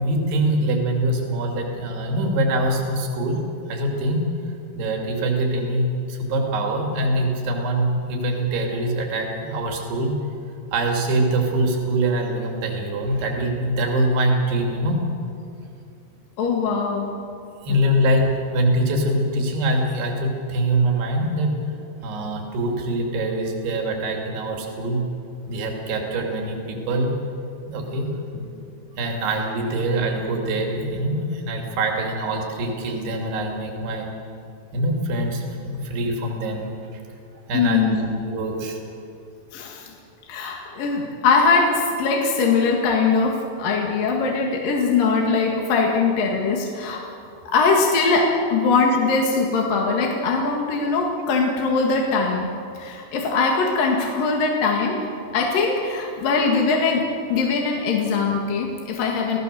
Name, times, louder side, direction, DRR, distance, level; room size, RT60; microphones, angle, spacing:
voice 1, 0.0-3.4 3.7-4.2 4.8-10.1 10.7-15.0 17.6-21.5 22.0-25.0 25.5-27.1 27.7-28.5 29.0-34.1 34.7-36.7 36.9-37.0 37.5-38.8, right 1 dB, 65° right, 1 dB, 4.8 m, -24 dB
voice 2, 16.4-17.1 17.7-17.8 37.5-38.1 39.5-39.9 40.3-47.0 47.5-59.4, left 4 dB, 55° left, -1 dB, 3.2 m, -21 dB
28.5 x 17.5 x 6.9 m, 2.6 s
omnidirectional pair, 5.2 m